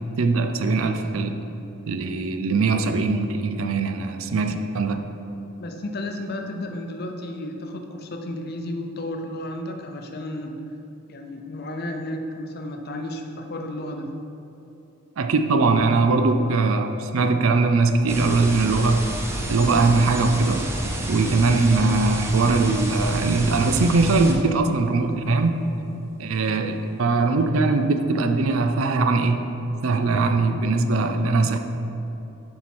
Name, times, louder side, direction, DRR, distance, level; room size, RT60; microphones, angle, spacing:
voice 1, 0.2-1.4 1.9-5.0 15.2-19.1 19.5-20.7 21.1-25.6 26.2-29.4 29.8-31.6, right 3 dB, 75° right, 7 dB, 0.5 m, -21 dB
voice 2, 5.6-10.6 11.1-14.2, left 1 dB, 45° left, 4 dB, 0.6 m, -33 dB
sound 1, 18.1-24.3, right 1 dB, 10° right, 0.5 m, -30 dB
7.1 x 4.7 x 4.3 m, 3.0 s
head